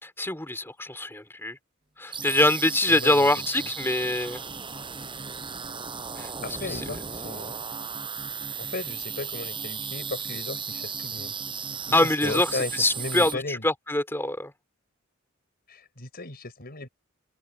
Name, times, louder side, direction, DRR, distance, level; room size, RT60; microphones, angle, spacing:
voice 1, 0.0-1.6 2.0-4.4 6.2-6.3 6.6-6.9 11.9-14.5, left 1 dB, 10° left, 3.9 m, -24 dB
sound 1, 2.1-13.4, right 6 dB, 25° right, 6.5 m, -35 dB
voice 2, 2.9-3.3 6.4-7.6 8.6-11.3 12.2-13.6 15.7-16.9, left 2 dB, 50° left, 5.2 m, -35 dB
head